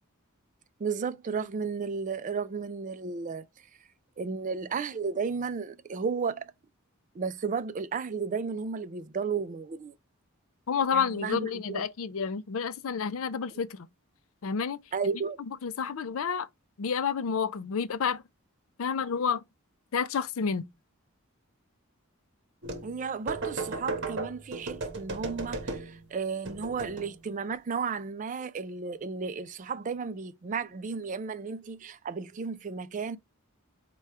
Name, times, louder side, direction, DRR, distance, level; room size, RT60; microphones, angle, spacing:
voice 1, 0.8-3.5 4.2-6.5 7.1-9.9 10.9-11.9 14.9-15.4 22.8-33.2, right 5 dB, 35° right, 0.4 m, -33 dB
voice 2, 10.7-13.9 14.4-14.8 15.6-16.5 16.8-18.2 18.8-19.4 19.9-20.7, left 6 dB, 65° left, 0.4 m, -29 dB
sound 1, 22.6-22.9 23.3-26.0 26.4-27.2, right 3 dB, 55° right, 0.9 m, -35 dB
4.8 x 2.3 x 4.2 m
head